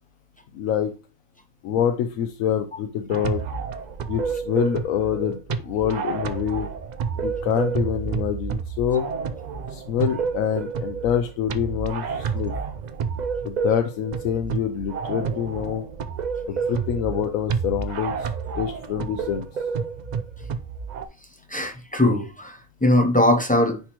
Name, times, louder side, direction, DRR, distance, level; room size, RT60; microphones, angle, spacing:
voice 1, 0.5-0.9 1.6-3.4 4.1-6.7 7.2-9.1 9.7-12.5 13.4-15.8 16.4-18.3 18.6-19.5, left 9 dB, 85° left, 1.0 m, -26 dB
sound 1, 3.1-21.0, right 6 dB, 85° right, 0.4 m, -29 dB
voice 2, 21.5-23.8, left 1 dB, 15° left, 0.3 m, -21 dB
9.9 x 3.4 x 3.0 m
omnidirectional pair, 1.4 m